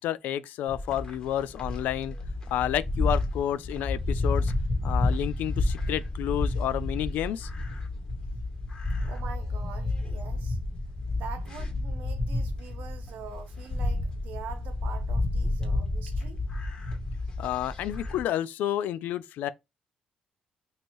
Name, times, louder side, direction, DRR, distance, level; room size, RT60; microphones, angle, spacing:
voice 1, 0.0-2.2 2.5-4.5 4.8-7.5 17.4-19.5, left 11 dB, 85° left, 0.3 m, -30 dB
Mongolian steppe herd animals, 0.7-18.2, left 2 dB, 30° left, 1.5 m, -30 dB
voice 2, 9.0-10.6 11.1-16.4, right 7 dB, 80° right, 0.8 m, -44 dB
3.1 x 2.6 x 4.4 m
cardioid pair, 85°, 3 cm